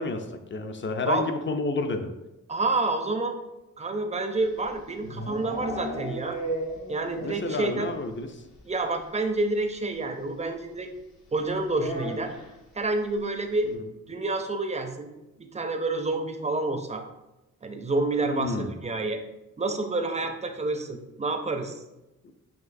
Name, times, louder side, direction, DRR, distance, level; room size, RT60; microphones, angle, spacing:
voice 1, 0.0-2.1 7.2-8.4 13.6-13.9 18.3-18.7, left 3 dB, 35° left, 7 dB, 0.4 m, -30 dB
voice 2, 2.5-3.4 3.8-6.4 6.9-7.9 8.7-10.9 11.3-12.3 12.7-13.7 14.1-15.1 15.4-17.0 17.6-19.2 19.6-21.8, right 2 dB, 20° right, 6 dB, 0.4 m, -28 dB
sound 1, 4.5-7.5 7.8-7.9 8.2-8.3 8.5-8.7 9.9-10.0 11.7-12.6, equal, 55° left, 0.9 m, -35 dB
5.9 x 2.6 x 2.6 m, 0.99 s
wide cardioid pair, 95°, 34 cm